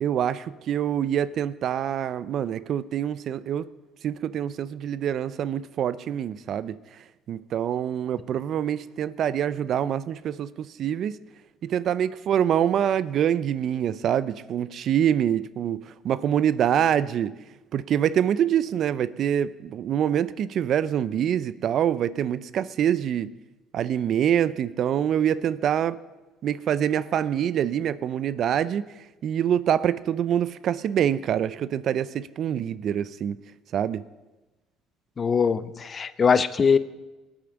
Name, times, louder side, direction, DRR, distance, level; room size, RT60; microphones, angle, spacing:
voice 1, 0.0-3.7 4.0-6.8 7.3-11.2 11.6-17.3 17.7-23.3 23.7-26.0 26.4-28.8 29.2-33.4 33.7-34.0, right 9 dB, 55° right, 17 dB, 0.6 m, -25 dB
voice 2, 35.2-36.8, left 6 dB, 35° left, 14 dB, 0.8 m, -21 dB
17.5 x 8.8 x 7.1 m, 1.1 s
supercardioid pair, 85°, 0 cm